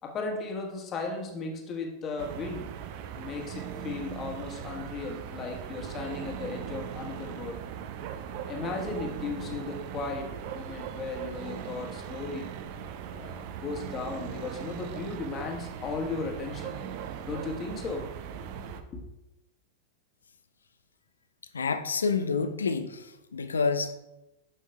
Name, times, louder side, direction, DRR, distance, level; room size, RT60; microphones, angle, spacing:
voice 1, 0.0-2.7 3.2-7.6 8.5-12.5 13.1-16.8 17.3-18.1 18.7-19.0, left 4 dB, 30° left, 1 dB, 1.4 m, -36 dB
sound 1, 2.2-18.8, right 8 dB, 45° right, 0.5 m, -39 dB
voice 2, 21.5-23.1 23.3-23.9, left 4 dB, 70° left, 10 dB, 0.5 m, -28 dB
10.0 x 6.2 x 2.3 m, 0.96 s
figure-of-eight pair, 90°, 0 cm